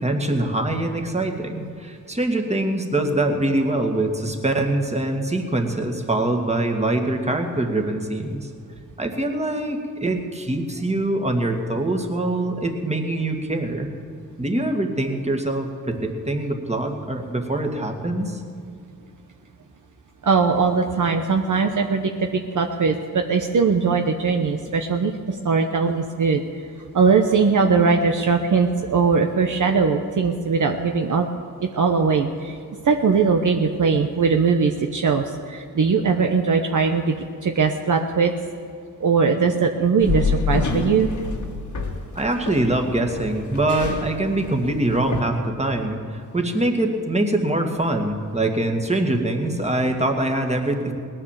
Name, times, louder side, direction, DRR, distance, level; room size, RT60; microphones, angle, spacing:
voice 1, 0.0-8.5 9.0-13.9 14.4-15.7 16.0-18.4 42.2-50.9, right 1 dB, 20° right, 3 dB, 2.1 m, -23 dB
voice 2, 20.2-26.4 26.9-31.3 31.6-32.6 32.8-37.2 37.4-38.3 39.0-41.1, right 5 dB, 55° right, 4 dB, 1.0 m, -20 dB
sound 1, 40.0-45.2, left 4 dB, 50° left, 1.9 m, -28 dB
18.5 x 9.9 x 7.5 m, 2.4 s
cardioid pair, 65°, 36 cm